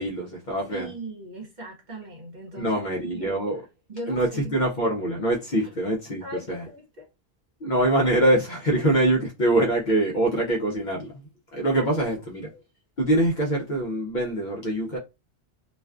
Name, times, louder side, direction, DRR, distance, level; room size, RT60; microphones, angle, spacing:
voice 1, 0.0-0.9 2.5-3.6 4.1-6.6 7.6-11.1 11.5-12.5 13.0-15.0, right 1 dB, 55° left, 0.6 m, -24 dB
voice 2, 0.7-3.3 3.9-4.6 6.2-7.1 12.5-12.6, right 1 dB, 45° right, 0.8 m, -39 dB
2.4 x 2.2 x 2.3 m
omnidirectional pair, 1.1 m